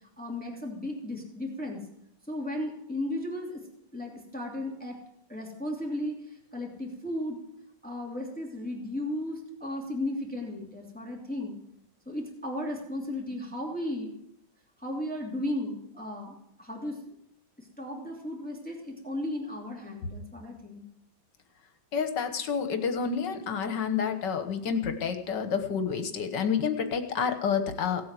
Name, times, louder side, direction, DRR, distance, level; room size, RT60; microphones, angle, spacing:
voice 1, 0.2-1.8 2.3-3.6 3.9-5.0 5.3-7.4 7.8-11.6 12.1-14.1 14.8-17.1 17.6-20.8, left 1 dB, 5° left, -1 dB, 2.7 m, -35 dB
voice 2, 21.9-28.0, left 6 dB, 80° left, 8 dB, 1.9 m, -29 dB
17.5 x 8.6 x 7.6 m, 0.75 s
omnidirectional pair, 1.9 m